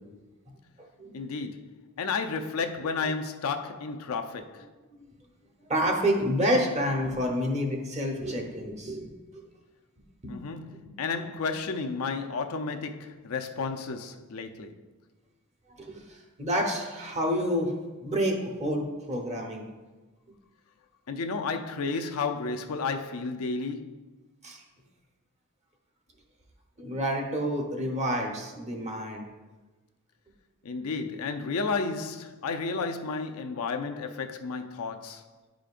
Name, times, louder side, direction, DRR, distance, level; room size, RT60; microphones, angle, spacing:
voice 1, 1.1-4.7 10.3-14.8 21.1-24.1 30.6-35.3, left 4 dB, 80° left, 0.5 m, -32 dB
voice 2, 5.7-9.1 15.7-17.7 18.0-19.7 24.4-24.6 26.8-29.3, equal, 30° right, 1.0 m, -28 dB
10.0 x 5.0 x 2.5 m
head